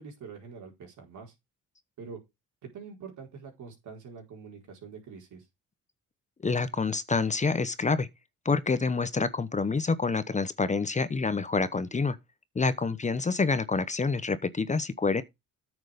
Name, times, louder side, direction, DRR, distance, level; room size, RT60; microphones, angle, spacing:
voice 1, 0.0-1.3 2.0-2.2 2.6-5.5, right 5 dB, 75° right, 4.3 m, -45 dB
voice 2, 6.4-8.1 8.4-12.2 12.6-15.2, left 4 dB, 25° left, 0.9 m, -27 dB
9.4 x 6.2 x 5.1 m
cardioid pair, 90°, 30 cm